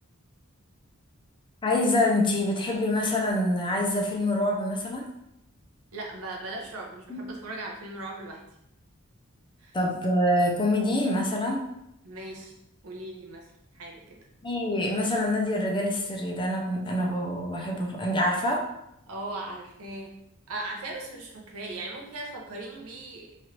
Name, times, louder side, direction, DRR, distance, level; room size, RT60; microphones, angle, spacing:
voice 1, 1.6-5.0 7.1-7.2 9.7-11.6 14.4-18.7, left 1 dB, 20° left, 1 dB, 0.5 m, -26 dB
voice 2, 5.9-8.4 9.6-9.8 12.0-12.5 12.8-14.2 19.1-20.1 20.5-23.3, right 2 dB, 85° right, 0 dB, 0.7 m, -38 dB
3.1 x 2.5 x 2.9 m, 0.81 s
head